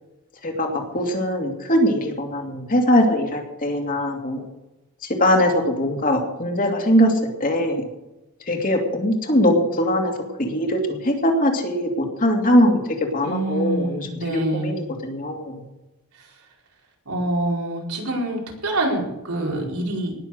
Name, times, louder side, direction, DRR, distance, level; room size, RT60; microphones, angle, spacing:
voice 1, 0.4-4.4 5.2-7.1 7.4-7.8 8.5-10.1 10.4-12.8 13.1-15.6, equal, 40° left, 3 dB, 2.7 m, -21 dB
voice 2, 13.2-14.8 16.2-16.3 17.0-20.1, right 1 dB, 90° right, -2 dB, 4.7 m, -26 dB
19.0 x 7.3 x 6.6 m, 1.0 s
head